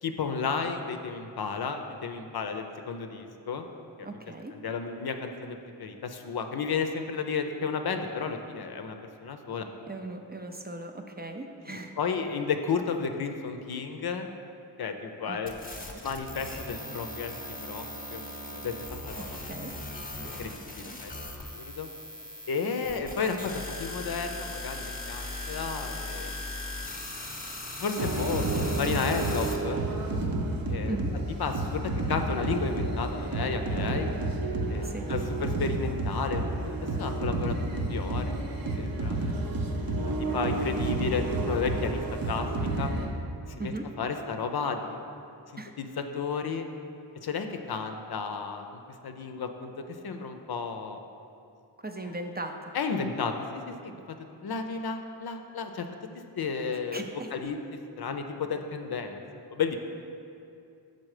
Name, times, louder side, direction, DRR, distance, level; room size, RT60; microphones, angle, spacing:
voice 1, 0.0-3.7 4.0-4.1 4.5-9.7 11.7-14.3 14.8-15.6 16.0-18.2 18.5-19.5 20.2-21.1 21.5-21.9 22.5-26.3 27.8-29.8 30.7-31.0 31.4-34.1 34.7-39.4 40.3-42.5 42.8-42.9 43.5-45.0 45.5-46.7 47.2-51.0 52.7-53.9 54.4-55.9 56.4-57.0 57.3-57.6 58.0-59.2 59.5-59.8, left 5 dB, 60° left, 6 dB, 0.6 m, -33 dB
voice 2, 4.0-4.6 9.9-11.9 15.3-15.4 15.9-16.0 19.2-19.7 20.8-21.0 30.8-31.2 34.8-35.0 40.4-40.5 40.8-40.9 43.6-43.9 45.6-45.7 51.8-52.6 56.9-57.3, right 2 dB, 25° right, 4 dB, 0.4 m, -38 dB
sound 1, 15.5-29.6, left 1 dB, 20° left, 0.9 m, -39 dB
sound 2, 28.0-43.1, right 2 dB, 55° right, 0.8 m, -30 dB
6.3 x 4.1 x 4.9 m, 2.6 s
cardioid pair, 45°, 42 cm